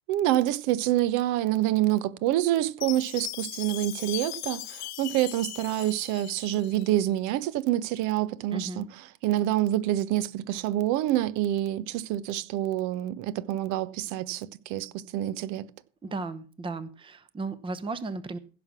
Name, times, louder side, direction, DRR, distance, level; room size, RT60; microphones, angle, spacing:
voice 1, 0.1-8.9 9.2-15.7, right 13 dB, 50° right, 0.9 m, -27 dB
Chime, 2.8-6.9, left 17 dB, 45° left, 1.0 m, -38 dB
voice 2, 8.5-8.9 16.0-18.4, right 3 dB, 15° right, 0.9 m, -35 dB
16.0 x 6.0 x 6.0 m
hypercardioid pair, 90°, 37 cm